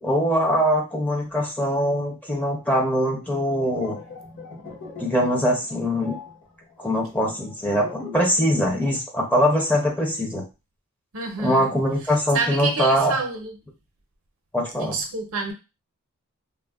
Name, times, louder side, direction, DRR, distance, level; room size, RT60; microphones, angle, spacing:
voice 1, 0.0-4.0 5.0-6.2 6.8-10.4 11.4-13.2 14.5-15.0, equal, 10° left, 0.6 m, -22 dB
sound 1, 3.5-8.4 8.7-8.9, left 4 dB, 60° left, 1.6 m, -41 dB
voice 2, 11.1-13.5 14.8-15.5, right 4 dB, 65° right, 0.7 m, -29 dB
3.3 x 2.1 x 2.3 m
head